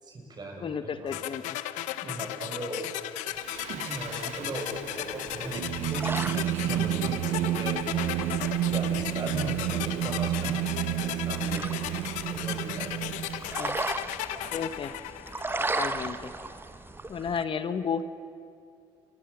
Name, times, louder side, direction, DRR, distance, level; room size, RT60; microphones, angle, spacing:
voice 1, 0.0-1.1 2.0-2.9 3.7-7.8 8.7-10.6 10.9-11.7 12.3-13.0, right 2 dB, 35° right, 1 dB, 7.5 m, -38 dB
voice 2, 0.6-1.6 13.6-13.8 14.5-14.9 15.7-16.3 17.1-18.0, left 6 dB, 45° left, 11 dB, 1.0 m, -32 dB
sound 1, 1.1-16.0, left 14 dB, 80° left, 0.9 m, -36 dB
Singing, 3.4-13.8, right 13 dB, 70° right, 0.8 m, -31 dB
sound 2, 5.3-17.4, right 2 dB, 15° right, 1.3 m, -38 dB
30.0 x 21.0 x 7.2 m, 2.5 s
supercardioid pair, 75°, 13 cm